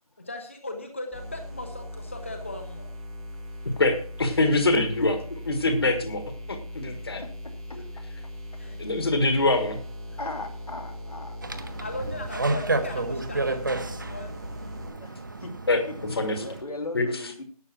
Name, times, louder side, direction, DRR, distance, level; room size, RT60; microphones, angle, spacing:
voice 1, 0.2-2.9 6.9-7.2 7.7-7.8 8.6-8.8 11.8-14.3, left 2 dB, 20° left, 5 dB, 0.7 m, -38 dB
sound 1, 1.1-14.9, equal, ahead, 1.0 m, -39 dB
voice 2, 3.8-5.1 5.5-6.2 6.5-7.2 8.8-9.8 15.7-15.8 16.1-16.4 16.9-17.1, left 2 dB, 45° left, 7 dB, 1.5 m, -24 dB
voice 3, 4.8-5.1 5.8-6.1 7.1-7.3 7.7-8.0 10.2-11.8 14.8-15.5 16.0-17.4, left 2 dB, 85° left, 3 dB, 2.8 m, -37 dB
sound 2, 11.4-16.6, right 2 dB, 35° right, 0.7 m, -31 dB
11.5 x 7.2 x 5.9 m, 0.43 s
figure-of-eight pair, 180°, 19 cm